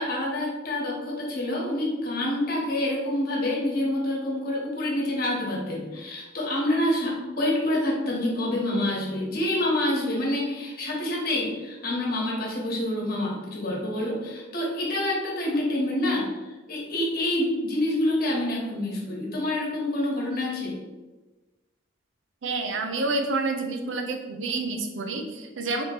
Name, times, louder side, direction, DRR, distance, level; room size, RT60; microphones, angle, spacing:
voice 1, 0.0-20.8, left 1 dB, 50° left, -2 dB, 1.2 m, -27 dB
voice 2, 22.4-25.8, right 3 dB, 75° right, 5 dB, 0.6 m, -28 dB
3.5 x 2.9 x 4.3 m, 1.2 s
head